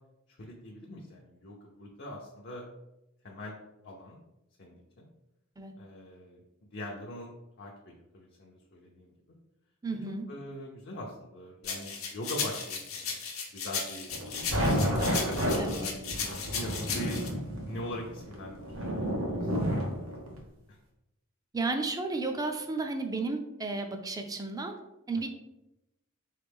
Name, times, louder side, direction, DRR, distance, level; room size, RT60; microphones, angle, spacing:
voice 1, 0.3-2.6 3.2-3.6 3.8-4.2 4.6-5.1 5.8-6.4 6.7-9.4 10.3-13.2 13.5-14.2 14.6-17.2 17.6-19.8 20.3-20.4 20.7-20.8, left 1 dB, 55° left, -2 dB, 0.6 m, -43 dB
voice 2, 9.8-10.3 15.6-15.9 21.5-24.8 25.1-25.3, right 3 dB, 15° right, 5 dB, 0.4 m, -33 dB
sound 1, 11.6-17.3, left 5 dB, 90° left, 0.9 m, -36 dB
sound 2, 14.1-20.4, equal, 85° right, 1.0 m, -31 dB
4.1 x 3.2 x 3.5 m, 0.91 s
head